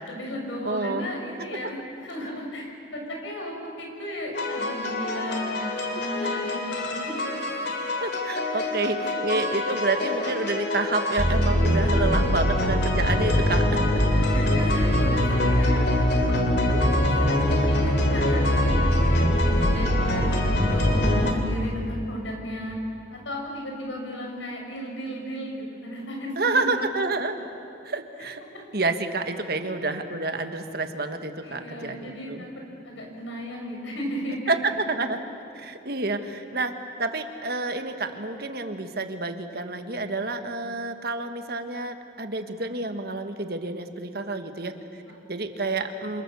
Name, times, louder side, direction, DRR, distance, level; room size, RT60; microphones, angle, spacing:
voice 1, 0.1-7.1 7.6-7.7 8.5-8.7 9.5-9.6 14.1-15.8 16.3-22.8 23.1-26.6 31.4-34.6 45.2-45.3, equal, 80° left, 0 dB, 6.7 m, -34 dB
voice 2, 0.6-1.1 8.0-13.8 14.7-14.9 26.4-27.4 27.8-28.4 28.7-32.5 34.5-35.2 35.5-45.0 45.3-46.2, right 2 dB, 55° right, 7 dB, 1.6 m, -29 dB
sound 1, 4.3-21.3, left 1 dB, 55° left, 3.2 m, -23 dB
28.0 x 28.0 x 7.1 m, 2.6 s
head